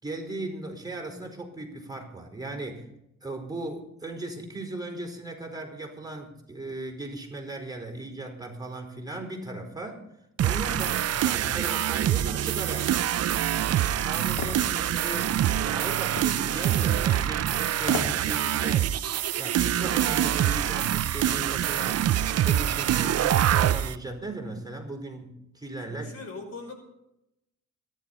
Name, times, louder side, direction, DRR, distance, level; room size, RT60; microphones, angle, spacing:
voice 1, 0.0-2.9 3.2-10.0 10.4-12.9 13.4-19.1 19.4-22.1 22.4-26.1, right 2 dB, 15° right, 1 dB, 4.7 m, -37 dB
sound 1, 10.4-23.9, right 11 dB, 55° right, 0.7 m, -25 dB
sound 2, 14.4-14.6 16.2-16.4 17.8-18.2 18.6-18.7, left 3 dB, 85° left, 2.5 m, -32 dB
voice 2, 25.9-26.7, left 3 dB, 55° left, 5 dB, 5.3 m, -40 dB
25.5 x 11.0 x 4.2 m, 0.83 s
cardioid pair, 90°, 30 cm